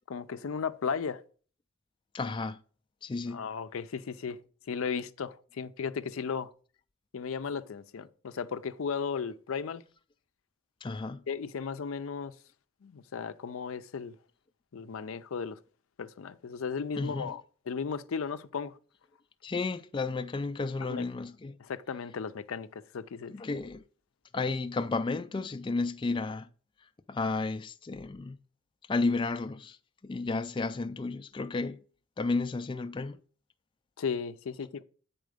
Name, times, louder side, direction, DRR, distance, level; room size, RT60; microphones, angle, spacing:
voice 1, 0.1-1.2 3.3-4.4 4.7-6.5 7.1-9.8 11.3-12.3 12.8-14.2 14.7-15.6 16.0-18.7 20.9-21.0 21.6-23.4 34.0-34.8, left 6 dB, 80° left, 0.5 m, -35 dB
voice 2, 2.1-2.6 3.0-3.5 10.8-11.2 17.0-17.4 19.4-21.6 23.3-23.8 24.3-26.5 27.1-28.4 28.9-29.8 30.0-31.8 32.2-33.2, left 3 dB, 25° left, 0.3 m, -32 dB
9.3 x 4.2 x 5.0 m
head